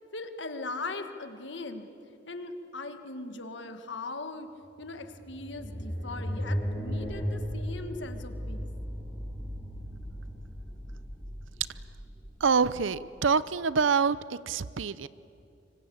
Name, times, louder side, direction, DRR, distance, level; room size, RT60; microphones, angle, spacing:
voice 1, 0.1-1.9 2.3-4.5 4.8-8.7, left 3 dB, 65° left, 7 dB, 1.6 m, -39 dB
sound 1, 4.8-13.2, equal, 5° left, 7.3 m, -36 dB
voice 2, 12.4-14.2 14.5-15.1, right 5 dB, 80° right, 17 dB, 0.6 m, -25 dB
25.5 x 24.5 x 8.6 m, 2.7 s
head